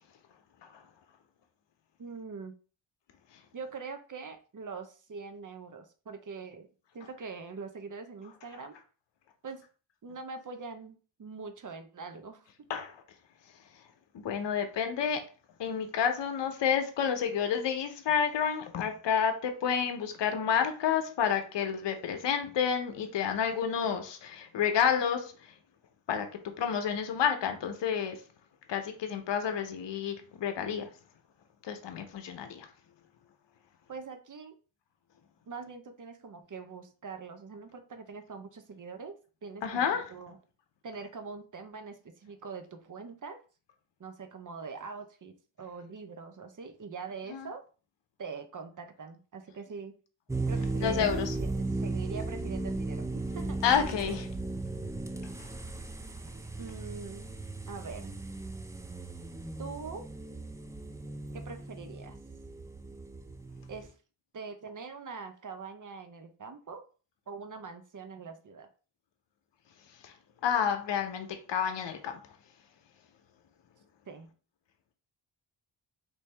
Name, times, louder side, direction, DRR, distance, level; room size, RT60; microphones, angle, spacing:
voice 1, 2.0-2.5 3.5-6.7 6.9-8.8 9.4-9.6 10.0-12.5 33.9-34.5 35.5-39.2 39.4-40.4 40.8-43.4 44.0-47.6 48.2-49.9 50.5-53.6 56.6-57.3 57.7-58.1 59.6-60.0 61.3-62.2 63.7-63.9 64.3-66.8 67.3-68.7 74.1-74.3, right 5 dB, 40° right, 0.8 m, -43 dB
voice 2, 14.1-15.2 15.6-25.3 26.1-28.2 28.7-30.9 31.6-32.7 39.6-40.1 47.3-47.5 50.8-51.3 53.6-54.3 70.0-70.1 70.4-72.2, left 7 dB, 60° left, 0.8 m, -30 dB
sound 1, 50.3-63.9, right 2 dB, 5° right, 0.3 m, -36 dB
3.4 x 2.7 x 3.3 m
cardioid pair, 65°, 48 cm